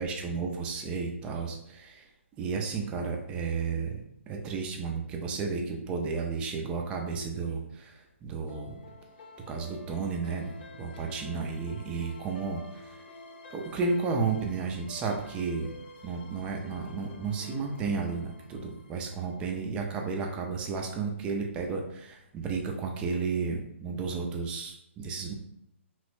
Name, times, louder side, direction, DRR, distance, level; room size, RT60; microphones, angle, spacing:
voice 1, 0.0-2.1 2.4-4.0 4.3-8.8 9.5-13.0 13.5-15.7 16.0-25.3, right 4 dB, 15° right, 2 dB, 0.4 m, -33 dB
sound 1, 8.5-19.7, left 3 dB, 50° left, 0.5 m, -50 dB
3.0 x 2.1 x 3.1 m, 0.79 s
hypercardioid pair, 145°, 7 cm